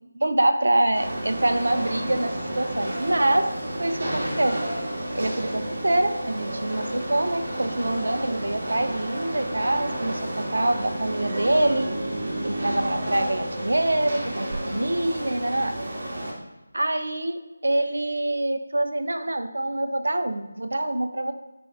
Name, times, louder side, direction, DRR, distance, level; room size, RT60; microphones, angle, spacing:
voice 1, 0.1-3.5 3.8-4.6 5.1-11.9 12.4-15.7 16.7-21.3, right 1 dB, 65° right, 8 dB, 0.6 m, -25 dB
sound 1, 0.9-16.3, right 1 dB, 35° right, 1.8 m, -31 dB
9.9 x 5.2 x 2.4 m, 1.0 s
figure-of-eight pair, 160°, 0 cm